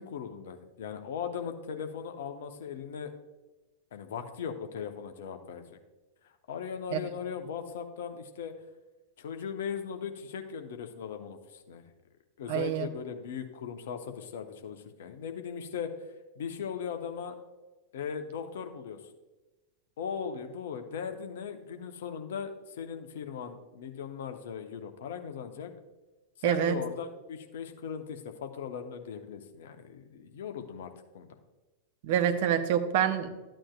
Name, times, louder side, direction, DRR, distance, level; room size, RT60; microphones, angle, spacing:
voice 1, 0.0-3.1 3.9-5.8 6.5-8.5 9.2-11.8 12.4-15.9 16.4-17.4 17.9-19.0 20.0-25.7 26.4-31.3, left 7 dB, 60° left, 6 dB, 0.9 m, -38 dB
voice 2, 12.5-12.9 26.4-26.8 32.0-33.3, right 9 dB, 50° right, 7 dB, 0.9 m, -26 dB
13.0 x 8.9 x 2.4 m, 1.1 s
figure-of-eight pair, 90°, 0 cm